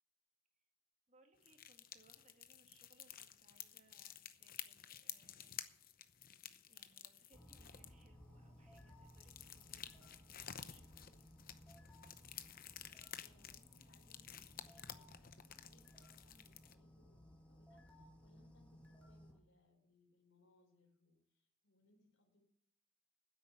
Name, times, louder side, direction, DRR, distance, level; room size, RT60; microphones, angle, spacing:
voice 1, 1.1-5.7 6.0-6.2 6.7-11.3, right 2 dB, 35° right, 4 dB, 1.9 m, -72 dB
sound 1, 1.4-8.1 8.7-16.7, left 10 dB, 45° left, 0.8 m, -53 dB
sound 2, 7.3-19.4, equal, 5° left, 1.9 m, -61 dB
voice 2, 13.2-22.4, left 2 dB, 70° left, 2 dB, 4.3 m, -73 dB
9.9 x 8.3 x 8.9 m, 0.73 s
head